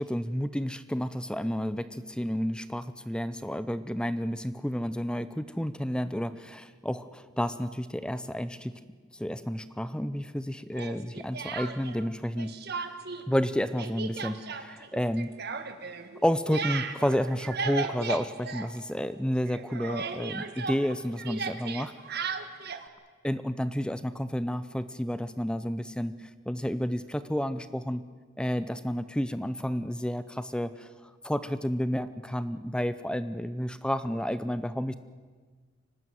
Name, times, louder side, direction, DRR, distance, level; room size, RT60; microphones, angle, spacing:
voice 1, 0.0-8.7 9.2-12.6 13.3-15.3 16.2-21.9 23.2-26.2 26.5-28.0 28.4-30.9 31.2-34.9, equal, 5° left, 13 dB, 0.6 m, -31 dB
Speech, 10.7-12.1 12.4-13.2 13.5-19.2 19.5-22.9, right 5 dB, 50° right, 1.6 m, -36 dB
24.0 x 18.5 x 9.3 m, 1.5 s
head